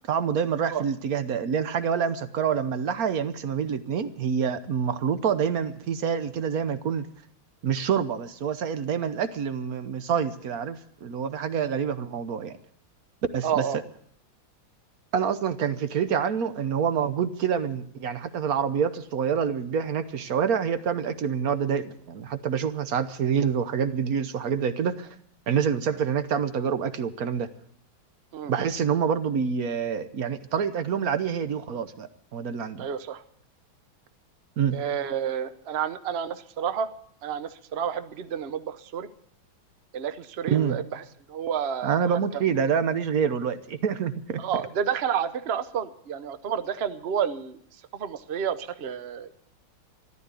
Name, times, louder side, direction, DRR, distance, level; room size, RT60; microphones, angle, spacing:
voice 1, 0.1-7.1 7.6-12.6 13.3-13.6 15.1-25.1 25.5-27.5 28.5-32.9 34.6-34.8 40.5-40.8 41.8-44.4, right 7 dB, 55° right, 12 dB, 1.1 m, -27 dB
voice 2, 13.4-13.8 28.3-28.5 32.8-33.2 34.7-36.9 37.2-39.1 39.9-42.2 44.4-47.6 47.9-49.3, right 8 dB, 80° right, 11 dB, 0.5 m, -30 dB
14.0 x 12.5 x 8.2 m, 0.62 s
omnidirectional pair, 2.3 m